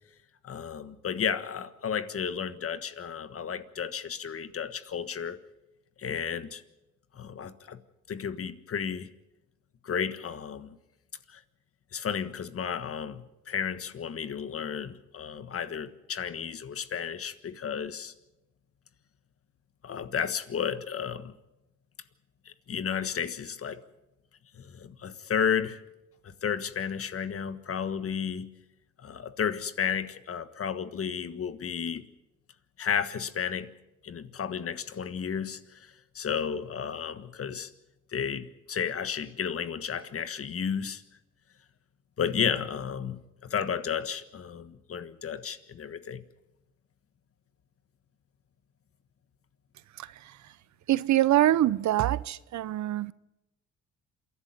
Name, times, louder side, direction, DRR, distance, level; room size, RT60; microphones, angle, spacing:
voice 1, 0.4-5.4 6.0-6.6 7.1-7.8 8.1-9.1 9.8-10.8 11.3-11.4 11.9-18.1 19.8-21.3 22.4-23.8 24.5-25.8 26.2-28.5 29.0-32.0 32.8-33.7 34.0-37.7 38.1-41.0 42.2-46.2, left 7 dB, 50° left, 1.5 m, -33 dB
voice 2, 50.9-53.1, right 13 dB, 70° right, 0.7 m, -24 dB
27.5 x 11.5 x 9.6 m
cardioid pair, 90°, 30 cm